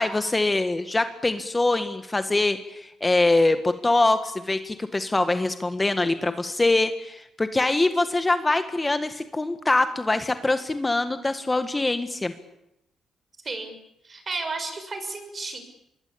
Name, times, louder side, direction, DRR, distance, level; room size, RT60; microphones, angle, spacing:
voice 1, 0.0-12.3, left 2 dB, 20° left, 9 dB, 1.7 m, -23 dB
voice 2, 13.4-13.7 14.0-15.6, right 3 dB, 35° right, 8 dB, 6.9 m, -32 dB
26.0 x 21.5 x 8.6 m, 0.82 s
cardioid pair, 90°, 0 cm